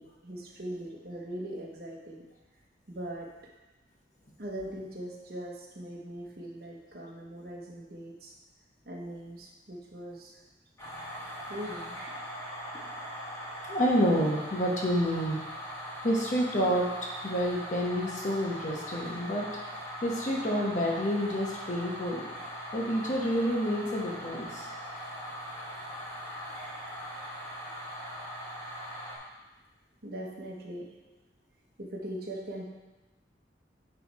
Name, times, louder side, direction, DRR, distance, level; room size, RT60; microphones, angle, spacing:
voice 1, 0.0-2.2 2.9-3.3 4.4-8.3 8.9-10.3 11.5-12.0 30.0-30.8 31.8-32.7, right 1 dB, 55° right, -1 dB, 1.1 m, -40 dB
sound 1, 10.8-29.2, equal, 15° left, 1.7 m, -41 dB
voice 2, 13.7-15.4 16.0-19.5 20.0-22.2 22.7-24.7, equal, 45° left, -2 dB, 1.1 m, -28 dB
9.5 x 3.4 x 4.2 m, 1.1 s
head